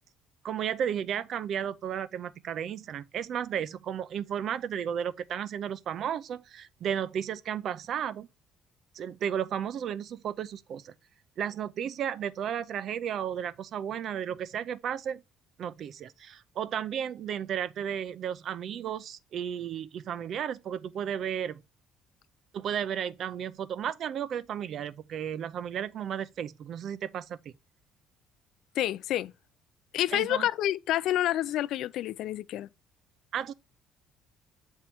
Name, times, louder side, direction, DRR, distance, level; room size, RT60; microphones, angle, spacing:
voice 1, 0.4-8.3 8.9-10.9 11.4-15.2 15.6-21.6 22.5-27.5 30.1-30.5 33.3-33.5, right 9 dB, 45° right, 0.4 m, -33 dB
voice 2, 28.8-29.3 29.9-32.7, left 13 dB, 65° left, 0.4 m, -28 dB
7.3 x 3.6 x 4.3 m
cardioid pair, 155°, 0 cm